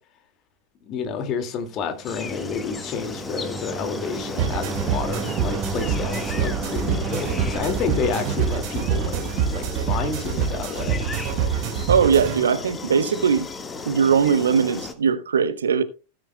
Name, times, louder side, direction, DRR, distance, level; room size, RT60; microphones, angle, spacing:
voice 1, 0.9-11.1, left 6 dB, 35° left, 2.1 m, -30 dB
sound 1, 1.8-10.5, right 3 dB, 10° right, 0.7 m, -35 dB
sound 2, 2.0-14.9, left 4 dB, 15° left, 1.6 m, -35 dB
sound 3, 4.4-12.4, right 8 dB, 45° right, 1.9 m, -26 dB
voice 2, 11.9-13.5 13.9-15.8, right 6 dB, 70° right, 0.9 m, -20 dB
17.5 x 9.3 x 2.2 m
figure-of-eight pair, 90°, 0 cm